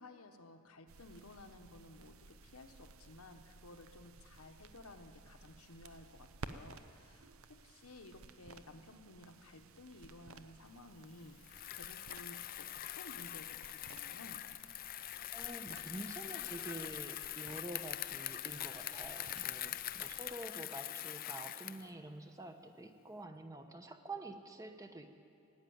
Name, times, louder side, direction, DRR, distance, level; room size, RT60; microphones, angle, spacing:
voice 1, 0.0-14.4, left 2 dB, 80° left, 6 dB, 1.1 m, -55 dB
sound 1, 0.9-20.5, right 4 dB, 65° right, 0.7 m, -56 dB
Bicycle, 11.4-21.9, left 13 dB, 40° left, 0.4 m, -43 dB
voice 2, 15.3-25.2, right 2 dB, 15° right, 6 dB, 0.8 m, -48 dB
17.0 x 9.0 x 9.4 m, 2.5 s
head